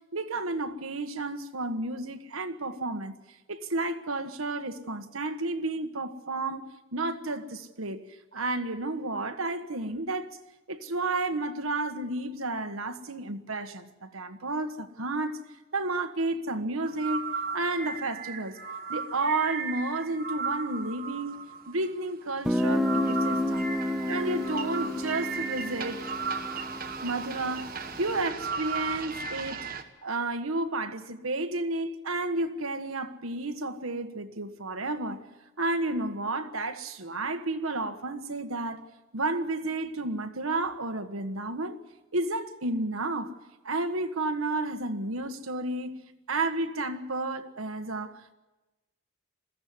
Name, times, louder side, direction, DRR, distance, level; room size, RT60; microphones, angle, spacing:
voice 1, 0.1-8.0 8.3-10.3 10.7-15.4 15.7-17.2 17.5-18.6 18.9-23.7 24.1-26.0 27.0-29.7 30.0-35.3 35.6-38.8 39.1-41.8 42.1-43.3 43.6-48.3, right 2 dB, 90° right, 1.5 m, -31 dB
sound 1, 16.8-29.8, right 5 dB, 45° right, 1.3 m, -36 dB
Guitar, 22.5-28.0, left 1 dB, ahead, 0.7 m, -30 dB
21.5 x 15.0 x 9.6 m
head